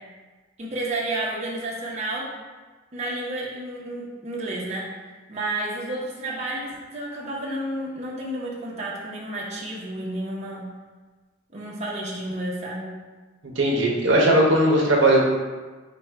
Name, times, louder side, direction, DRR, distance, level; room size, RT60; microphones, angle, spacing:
voice 1, 0.6-2.3 2.9-4.8 5.3-10.7 11.5-12.9, right 1 dB, 35° right, -5 dB, 0.7 m, -31 dB
voice 2, 13.6-15.3, right 1 dB, 70° right, -2 dB, 0.8 m, -18 dB
5.1 x 2.2 x 4.5 m, 1.3 s
head